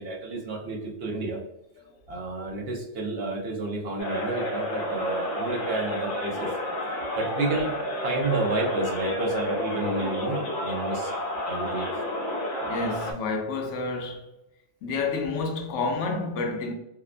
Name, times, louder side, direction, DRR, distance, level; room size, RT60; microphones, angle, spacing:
voice 1, 0.0-1.4 2.1-6.5 7.2-7.7 8.0-11.1 11.5-11.9, right 2 dB, 65° right, 0.8 m, -30 dB
sound 1, 4.0-13.1, left 1 dB, 60° left, 0.6 m, -30 dB
voice 2, 12.6-14.2 14.8-16.7, left 3 dB, 90° left, 0.9 m, -29 dB
2.8 x 2.1 x 2.4 m
omnidirectional pair, 1.2 m